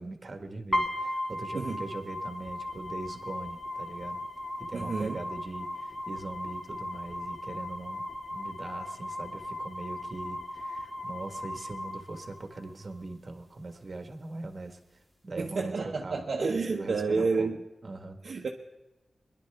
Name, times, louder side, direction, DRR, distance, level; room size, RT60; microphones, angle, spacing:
voice 1, 0.0-4.2 4.6-14.8 15.2-15.7 16.0-17.5 17.8-18.2, right 2 dB, 45° right, 6 dB, 1.4 m, -41 dB
sound 1, 0.7-12.7, left 1 dB, 15° left, 2.1 m, -37 dB
voice 2, 4.7-5.2 15.4-17.6 18.2-18.5, right 4 dB, 60° right, 0 dB, 0.9 m, -30 dB
22.0 x 11.0 x 3.4 m, 1.0 s
wide cardioid pair, 85°, 0 cm